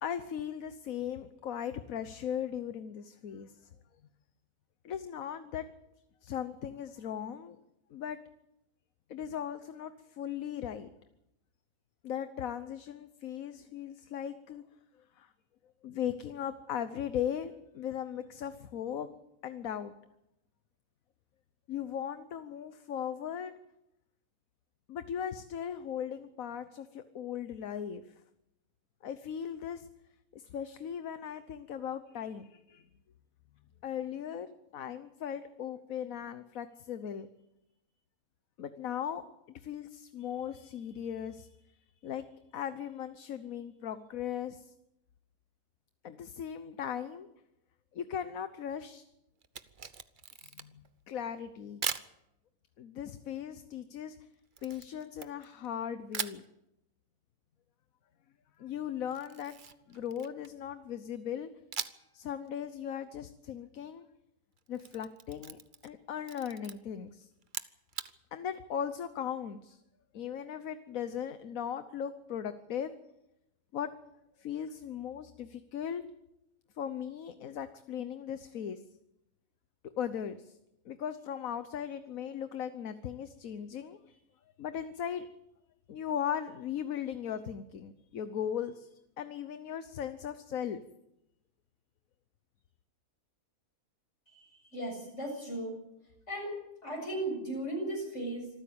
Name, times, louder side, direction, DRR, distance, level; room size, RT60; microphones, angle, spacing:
voice 1, 0.0-3.5 4.8-5.6 6.2-7.6 7.9-8.2 9.1-10.9 12.0-14.6 15.2-15.3 15.8-19.1 19.4-19.9 21.7-23.5 24.9-28.0 29.0-29.9 30.3-32.9 33.8-37.3 38.6-41.5 42.0-42.2 42.5-44.7 46.0-47.3 47.9-49.0 50.4-50.7 51.1-51.8 52.8-54.2 54.6-56.4 58.6-59.5 59.9-61.5 62.1-64.1 64.7-67.3 68.3-69.8 70.1-72.9 73.7-73.9 74.4-76.0 76.8-78.8 80.0-80.6 80.8-84.2 84.6-85.3 85.9-88.9 89.2-90.8, left 9 dB, 65° left, 11 dB, 1.4 m, -38 dB
Camera, 49.4-50.9 51.8-52.1 54.6-55.7 56.1-56.4 59.1-60.6 61.7-62.2 62.5-62.6 64.6-66.0 66.2-66.7 67.4-68.1, right 6 dB, 40° right, 0.9 m, -40 dB
voice 2, 94.3-95.8 96.3-96.5 96.8-98.5, right 1 dB, 50° left, 1 dB, 7.6 m, -36 dB
26.0 x 14.5 x 8.7 m, 0.88 s
omnidirectional pair, 1.6 m